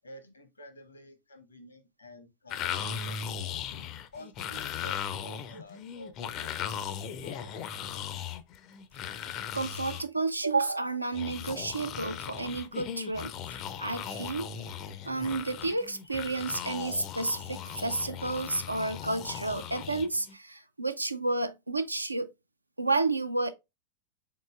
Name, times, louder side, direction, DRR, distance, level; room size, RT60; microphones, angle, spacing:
voice 1, 0.0-2.7 3.0-3.8 4.1-8.0, equal, 75° left, 0.8 m, -51 dB
sound 1, 2.5-10.0 11.1-20.3, left 8 dB, 35° left, 0.4 m, -38 dB
voice 2, 9.5-14.5 15.1-22.3 22.8-23.5, right 3 dB, 85° right, 0.4 m, -31 dB
3.8 x 3.7 x 2.2 m
figure-of-eight pair, 90°, 0 cm